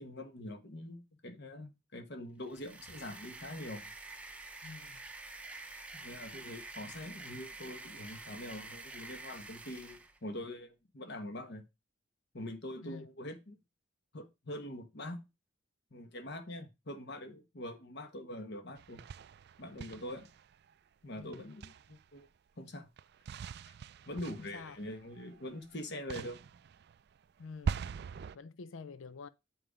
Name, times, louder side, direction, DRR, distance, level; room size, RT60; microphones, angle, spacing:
voice 1, 0.0-3.9 5.9-11.6 12.3-13.6 14.1-15.3 15.9-19.0 19.6-20.3 21.0-22.3 22.6-22.9 23.6-23.7 24.1-26.4, left 1 dB, 55° left, 1.3 m, -44 dB
sound 1, 2.4-10.2, right 3 dB, 5° right, 0.7 m, -48 dB
voice 2, 4.6-5.0 12.8-13.1 21.2-21.4 24.4-24.8 27.4-27.9 28.3-29.3, left 4 dB, 80° left, 0.5 m, -48 dB
sound 2, 18.8-20.7 21.3-22.2 23.0-25.7 26.1-28.4, right 6 dB, 55° right, 0.3 m, -42 dB
7.8 x 5.0 x 5.0 m
head